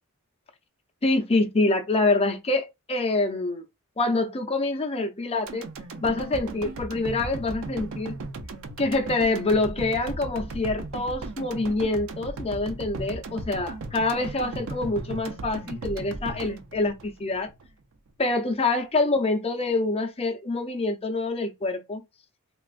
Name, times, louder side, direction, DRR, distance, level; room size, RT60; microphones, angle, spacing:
voice 1, 1.0-3.6 4.0-5.7 6.0-8.2 8.8-17.5 18.2-22.0, left 2 dB, 25° left, 0.5 m, -26 dB
sound 1, 5.5-17.7 18.1-18.2, right 2 dB, 65° right, 0.5 m, -37 dB
3.2 x 2.4 x 2.5 m
head